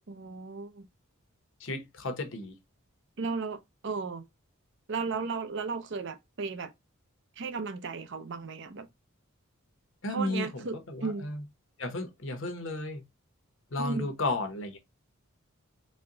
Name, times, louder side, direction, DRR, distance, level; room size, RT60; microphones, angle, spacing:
voice 1, 0.1-0.9 3.2-4.2 4.9-6.7 7.4-8.9 10.1-11.3 13.8-14.1, right 4 dB, 55° right, 0.6 m, -35 dB
voice 2, 1.6-2.5 10.0-11.4 11.8-13.0 13.7-14.8, left 2 dB, 60° left, 0.9 m, -33 dB
4.2 x 2.2 x 3.8 m
head